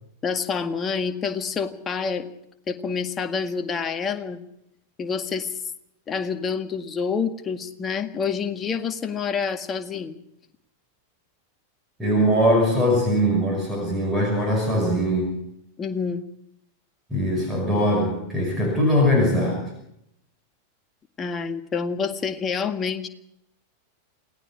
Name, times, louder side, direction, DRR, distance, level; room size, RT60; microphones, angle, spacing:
voice 1, 0.2-2.3 2.7-4.4 5.0-5.5 6.1-10.2 15.8-16.2 21.2-23.1, left 5 dB, 20° left, 7 dB, 1.8 m, -27 dB
voice 2, 12.0-15.3 17.1-19.7, equal, 10° right, 1 dB, 5.6 m, -21 dB
28.5 x 18.5 x 5.0 m, 0.78 s
figure-of-eight pair, 90°, 0 cm